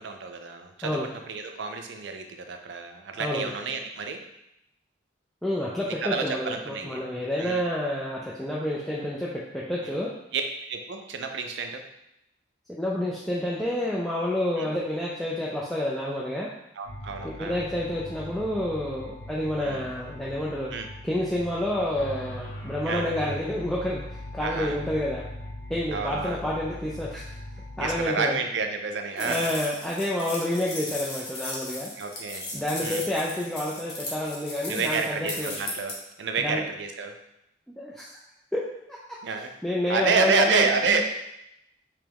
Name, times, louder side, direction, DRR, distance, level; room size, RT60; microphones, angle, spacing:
voice 1, 0.0-4.2 6.0-7.0 7.4-7.6 10.3-10.4 10.7-11.8 14.6-14.7 16.8-17.6 19.6-19.8 20.7-20.9 22.9-23.1 24.4-24.8 25.9-26.4 27.8-29.5 30.5-30.7 32.0-32.4 32.8-33.1 34.7-37.2 39.2-39.5 39.9-41.0, right 4 dB, 70° right, 5 dB, 0.4 m, -29 dB
voice 2, 3.2-3.5 5.4-9.3 9.5-10.1 12.7-16.5 17.2-20.7 21.0-25.2 25.7-27.3 27.8-28.4 29.2-31.9 32.5-35.5 36.4-36.6 37.7-38.1 38.5-38.6 39.6-41.0, left 1 dB, ahead, -6 dB, 0.3 m, -29 dB
sound 1, 16.8-28.0, left 1 dB, 85° left, 0.8 m, -40 dB
sound 2, 29.2-35.9, left 2 dB, 55° left, 0.9 m, -36 dB
3.4 x 3.0 x 3.4 m, 0.82 s
head